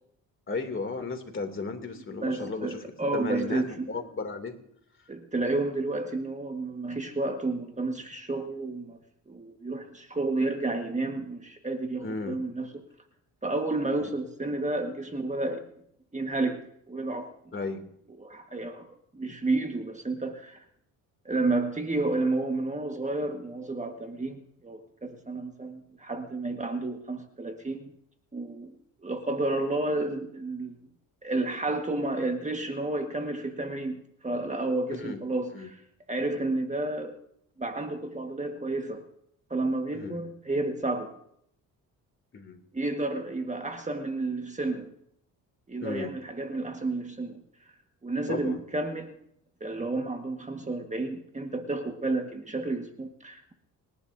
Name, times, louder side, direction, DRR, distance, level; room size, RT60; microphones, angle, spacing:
voice 1, 0.5-2.8 3.1-4.6 12.0-12.4 17.5-17.9 34.9-35.2 35.5-35.7 39.9-40.2 42.3-42.6 45.8-46.1 48.3-48.6, left 3 dB, 35° left, 5 dB, 2.7 m, -34 dB
voice 2, 2.2-3.9 5.1-9.0 9.3-12.7 13.4-15.7 16.1-16.6 16.9-17.5 18.2-20.6 21.2-27.9 28.3-28.7 29.0-30.8 31.2-35.8 36.1-37.2 37.6-39.1 39.5-41.1 42.7-44.9 45.7-47.4 48.0-49.2 49.6-53.5, right 2 dB, 20° right, 4 dB, 1.6 m, -31 dB
28.0 x 11.5 x 2.7 m, 0.72 s
cardioid pair, 80°, 36 cm